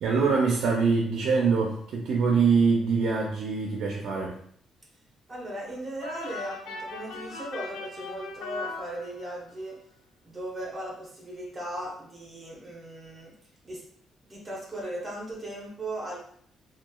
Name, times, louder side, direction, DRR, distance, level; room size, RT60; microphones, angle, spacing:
voice 1, 0.0-4.4, right 5 dB, 65° right, -1 dB, 0.4 m, -24 dB
voice 2, 5.3-9.8 10.2-13.3 13.6-13.8 14.2-16.2, right 1 dB, 15° right, -3 dB, 0.8 m, -37 dB
sound 1, 6.0-9.5, left 3 dB, 90° left, 0.5 m, -39 dB
2.9 x 2.1 x 2.2 m, 0.63 s
cardioid pair, 160°, 0 cm